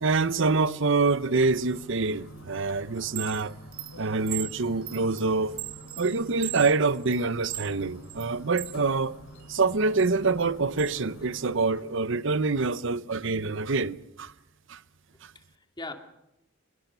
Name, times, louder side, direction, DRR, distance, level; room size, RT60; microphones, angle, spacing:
voice 1, 0.0-3.5 4.0-5.6 6.0-9.2 9.5-14.3 14.7-14.8 15.2-15.3, right 3 dB, 65° right, 0.8 m, -26 dB
sound 1, 1.4-11.8, right 1 dB, 85° left, 3.6 m, -47 dB
Chime, 3.0-8.8 9.2-10.9, right 16 dB, 45° right, 1.9 m, -39 dB
voice 2, 15.3-15.9, left 2 dB, 20° left, 2.3 m, -43 dB
23.0 x 21.0 x 6.9 m
head